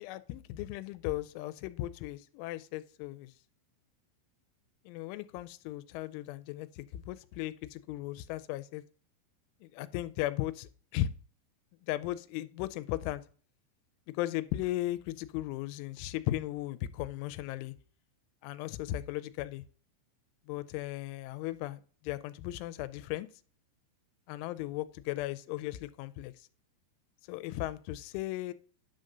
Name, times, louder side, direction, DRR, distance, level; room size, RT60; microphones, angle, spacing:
voice 1, 0.0-3.3 4.9-8.8 9.6-11.1 11.9-13.2 14.1-17.7 18.4-19.6 20.5-23.3 24.3-26.5 27.3-28.5, left 15 dB, 90° left, 12 dB, 3.0 m, -36 dB
10.5 x 3.8 x 6.5 m, 0.41 s
omnidirectional pair, 5.4 m